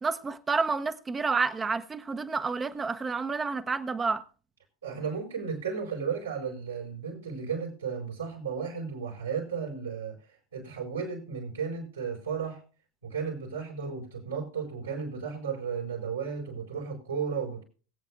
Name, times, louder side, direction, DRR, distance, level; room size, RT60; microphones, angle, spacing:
voice 1, 0.0-4.2, right 4 dB, 20° right, 0.8 m, -29 dB
voice 2, 4.8-10.1 10.5-12.6 13.0-17.6, right 6 dB, 80° right, 4.7 m, -34 dB
21.5 x 8.5 x 2.4 m
figure-of-eight pair, 80°, 0 cm